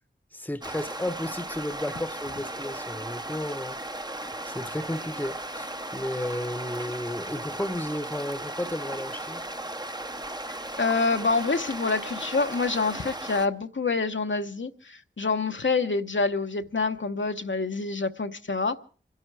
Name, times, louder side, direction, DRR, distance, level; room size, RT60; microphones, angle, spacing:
voice 1, 0.3-4.0 4.4-9.4, left 1 dB, 10° left, 0.9 m, -33 dB
sound 1, 0.6-13.5, right 1 dB, 20° right, 0.8 m, -36 dB
voice 2, 10.8-18.8, left 4 dB, 70° left, 0.9 m, -27 dB
26.0 x 11.5 x 4.7 m
wide cardioid pair, 50°, 20 cm